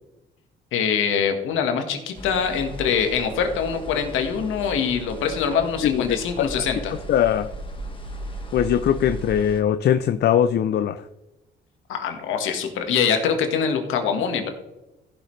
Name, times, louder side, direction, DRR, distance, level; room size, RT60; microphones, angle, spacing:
voice 1, 0.7-6.9 11.9-14.5, left 7 dB, 85° left, 5 dB, 1.6 m, -24 dB
sound 1, 2.2-9.6, right 1 dB, 25° left, 1.6 m, -36 dB
voice 2, 5.8-6.6 7.1-7.5 8.5-11.0, left 9 dB, 60° left, 12 dB, 0.5 m, -21 dB
15.0 x 6.6 x 3.2 m, 0.98 s
cardioid pair, 90°, 20 cm